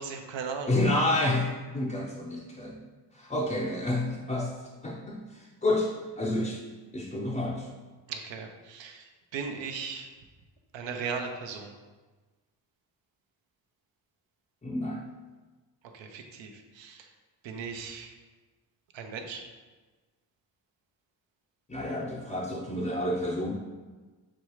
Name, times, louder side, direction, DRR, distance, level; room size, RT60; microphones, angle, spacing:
voice 1, 0.0-0.8 8.1-10.1 10.7-11.7 15.9-17.0 17.4-18.1 18.9-19.4, right 5 dB, 80° right, 4 dB, 0.6 m, -37 dB
voice 2, 0.7-2.8 3.1-4.5 4.8-5.9 6.2-6.6 6.9-7.7 14.6-15.0 21.7-23.5, left 1 dB, 20° left, -3 dB, 0.4 m, -29 dB
6.1 x 2.3 x 3.0 m, 1.3 s
cardioid pair, 60°, 44 cm